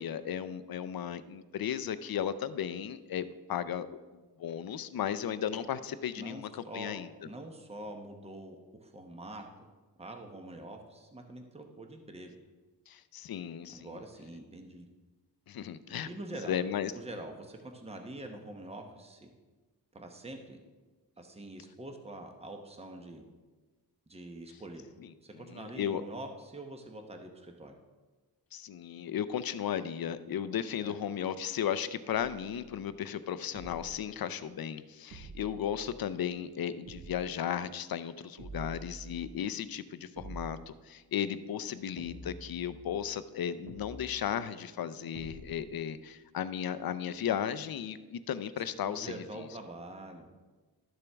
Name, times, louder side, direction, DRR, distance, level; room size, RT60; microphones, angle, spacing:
voice 1, 0.0-3.9 4.4-7.1 12.9-13.9 15.5-16.1 16.5-16.9 25.0-25.1 25.4-26.0 28.5-49.5, left 9 dB, 60° left, 13 dB, 0.5 m, -35 dB
voice 2, 6.1-7.0 7.2-9.4 10.0-12.4 13.7-14.9 16.0-16.6 16.9-19.3 19.9-20.6 21.2-23.2 24.1-24.9 25.2-27.8 30.8-31.0 48.8-50.3, right 1 dB, 15° right, 4 dB, 0.9 m, -45 dB
sound 1, 32.1-32.9 33.5-34.2 35.1-36.1 36.9-37.5 38.4-39.5 40.2-40.8 42.0-43.1 43.7-44.3 45.1-45.8, right 2 dB, 75° right, 1.3 m, -48 dB
12.0 x 6.9 x 3.5 m, 1.3 s
wide cardioid pair, 125°, 40 cm